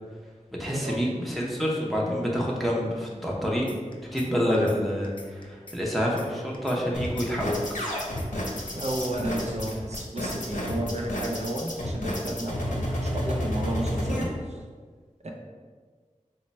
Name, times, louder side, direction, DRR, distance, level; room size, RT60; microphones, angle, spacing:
voice 1, 0.6-3.7 4.0-7.6, equal, ahead, -3 dB, 0.7 m, -27 dB
sound 1, 3.7-4.3 4.5-4.8 5.0-6.3 6.5-6.8 7.0-8.3 8.5-8.8 9.0-10.3 10.5-10.8 11.0-11.4, left 2 dB, 40° left, 0.5 m, -45 dB
sound 2, 6.9-14.2, left 1 dB, 75° left, 0.7 m, -30 dB
voice 2, 8.7-14.6 15.2-15.3, right 1 dB, 55° right, 0 dB, 0.5 m, -32 dB
3.1 x 2.2 x 4.1 m, 1.5 s
wide cardioid pair, 40°, 13 cm